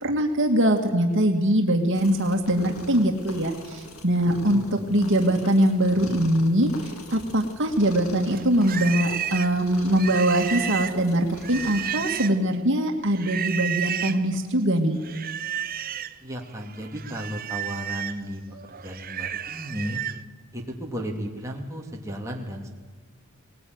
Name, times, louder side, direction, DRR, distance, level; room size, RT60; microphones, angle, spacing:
voice 1, 0.0-6.7 7.1-15.0, right 1 dB, 60° right, 3 dB, 2.2 m, -22 dB
sound 1, 1.9-12.3, left 2 dB, 85° left, 2.5 m, -42 dB
voice 2, 4.2-4.8 16.2-18.4 18.7-20.0 20.5-22.7, equal, 15° right, -1 dB, 2.9 m, -34 dB
Livestock farm animals working animals, 8.3-12.5 13.1-14.2 15.0-16.2 16.6-20.2, right 9 dB, 45° right, 0.7 m, -32 dB
21.0 x 19.5 x 9.7 m, 1.3 s
head